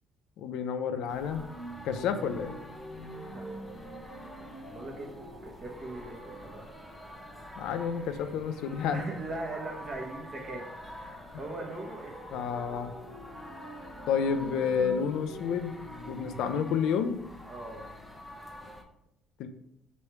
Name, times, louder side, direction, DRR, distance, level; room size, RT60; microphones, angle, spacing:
voice 1, 0.4-1.4 1.8-2.6 7.6-9.0 12.3-12.9 14.1-15.7 16.1-17.2 19.4-19.5, left 7 dB, 75° left, 9 dB, 0.4 m, -30 dB
sound 1, 1.1-18.8, left 1 dB, 5° left, 0.5 m, -47 dB
sound 2, 1.3-16.7, right 1 dB, 65° right, 1.1 m, -47 dB
voice 2, 3.3-3.8 4.6-6.7 8.9-10.7 11.0-12.3 17.5-17.8, right 2 dB, 30° right, 0 dB, 0.9 m, -40 dB
3.1 x 3.0 x 4.6 m, 0.80 s
cardioid pair, 145°, 0 cm